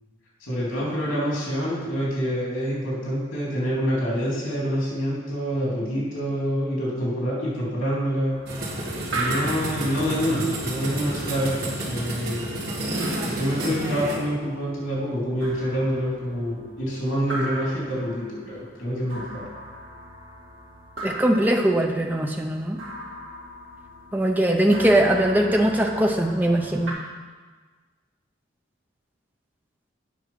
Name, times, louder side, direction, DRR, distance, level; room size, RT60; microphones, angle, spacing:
voice 1, 0.4-8.4 9.1-12.5 13.2-19.5, equal, 85° left, -4 dB, 3.3 m, -26 dB
sound 1, 8.3-26.9, right 1 dB, 75° right, 2.1 m, -39 dB
sound 2, 8.5-14.2, right 1 dB, 50° right, 2.2 m, -30 dB
voice 2, 21.0-22.8 24.1-26.9, right 1 dB, 10° right, 2 dB, 0.6 m, -21 dB
8.6 x 5.8 x 5.7 m, 1.4 s
head